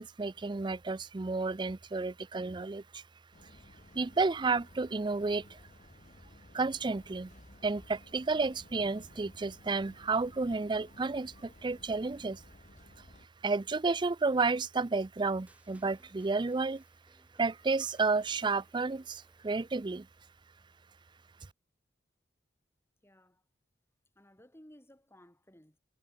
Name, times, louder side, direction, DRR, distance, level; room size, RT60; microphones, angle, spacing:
voice 1, 0.0-3.0 3.9-5.6 6.5-7.3 7.6-12.4 13.4-16.8 17.4-20.1, right 3 dB, 25° right, 0.5 m, -31 dB
sound 1, 3.3-13.3, left 1 dB, 45° left, 1.6 m, -57 dB
sound 2, 15.5-19.7, right 1 dB, 10° right, 7.1 m, -67 dB
voice 2, 23.0-23.4 24.1-25.8, equal, 15° left, 6.8 m, -58 dB
head